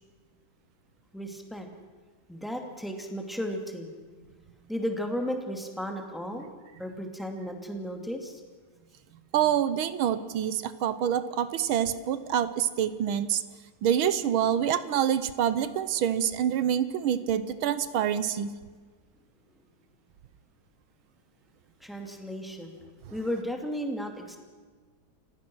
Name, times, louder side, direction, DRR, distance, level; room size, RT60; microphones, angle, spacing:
voice 1, 1.1-1.7 2.3-3.9 4.7-6.5 6.8-8.4 21.8-22.8 23.1-24.4, equal, ahead, 3 dB, 2.3 m, -34 dB
voice 2, 9.3-13.4 13.8-18.5, right 9 dB, 85° right, 14 dB, 1.7 m, -26 dB
29.0 x 16.0 x 6.2 m, 1.5 s
omnidirectional pair, 2.2 m